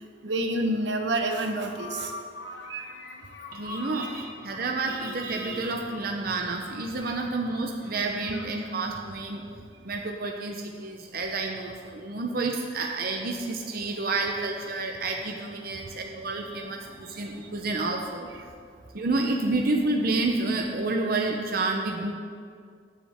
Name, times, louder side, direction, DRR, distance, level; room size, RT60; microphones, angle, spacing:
voice 1, 0.2-2.2 2.7-2.9 4.0-4.1, right 1 dB, 80° right, 5 dB, 1.1 m, -28 dB
sound 1, 1.7-9.2 13.3-18.1, left 2 dB, 75° left, 1.2 m, -46 dB
voice 2, 3.5-9.4 9.8-18.3 18.9-22.1, right 3 dB, 55° right, 2 dB, 0.8 m, -29 dB
20.0 x 7.4 x 3.6 m, 2.2 s
head